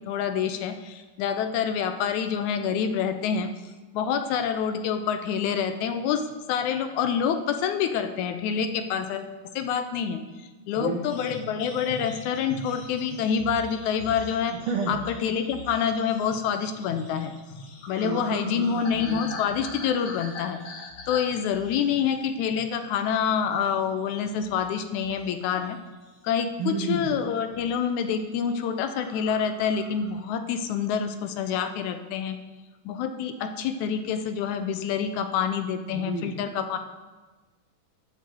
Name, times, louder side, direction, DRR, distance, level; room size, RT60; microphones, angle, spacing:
voice 1, 0.1-3.5 3.9-6.2 6.5-10.2 10.7-14.5 14.9-17.4 17.9-20.6 21.1-25.8 26.2-32.4 32.9-36.8, left 7 dB, 80° left, 8 dB, 1.9 m, -27 dB
voice 2, 10.8-11.1 14.5-15.0 17.9-19.4 26.6-27.1 35.9-36.4, right 4 dB, 90° right, 1 dB, 1.2 m, -31 dB
sound 1, 11.1-22.8 23.1-23.4 23.8-25.3 25.6-26.4 26.9-27.1 27.4-27.8 28.1-28.2 28.5-28.6 28.8-30.2, left 3 dB, 60° left, 1.7 m, -43 dB
10.5 x 4.1 x 7.6 m, 1.3 s
omnidirectional pair, 3.6 m